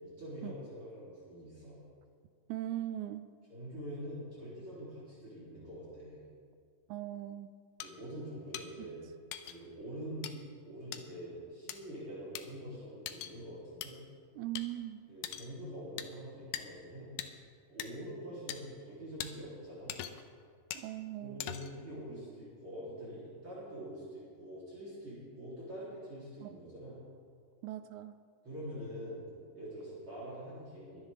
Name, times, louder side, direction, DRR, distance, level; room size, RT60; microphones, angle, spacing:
voice 1, 0.0-1.8 3.5-6.2 7.8-9.0 9.5-10.3 10.6-14.0 15.1-17.1 17.7-20.0 21.2-27.0 28.4-29.2 29.5-31.0, equal, 40° right, -8 dB, 4.0 m, -45 dB
voice 2, 2.5-3.3 6.9-7.5 14.3-15.0 20.7-21.4 26.4-26.5 27.6-28.1, right 14 dB, 85° right, 11 dB, 1.7 m, -39 dB
sound 1, 7.8-7.9 8.5-8.7 9.3-9.6 10.2-10.3 10.9-11.0 11.7-11.8 12.4-12.5 13.1-13.3 13.8-13.9 14.6-14.7 15.2-15.5 16.0-16.1 16.5-16.7 17.2-17.3 17.8-17.9 18.5-18.6 19.2-19.3 19.9-20.3 20.7-20.9 21.4-21.8, left 11 dB, 85° left, 2.4 m, -41 dB
23.0 x 9.8 x 3.5 m, 2.1 s
omnidirectional pair, 3.9 m